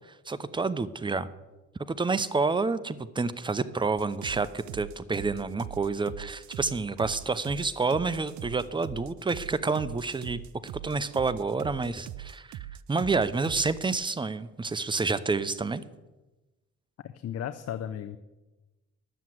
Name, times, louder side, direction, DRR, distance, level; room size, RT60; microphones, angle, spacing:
voice 1, 0.3-1.3 2.0-12.6 12.9-15.8, right 4 dB, 15° right, 14 dB, 0.7 m, -29 dB
sound 1, 4.0-13.9, right 13 dB, 70° right, 0.5 m, -41 dB
voice 2, 17.0-18.2, left 10 dB, 55° left, 10 dB, 0.7 m, -35 dB
11.5 x 7.2 x 7.7 m, 1.1 s
cardioid pair, 90°, 30 cm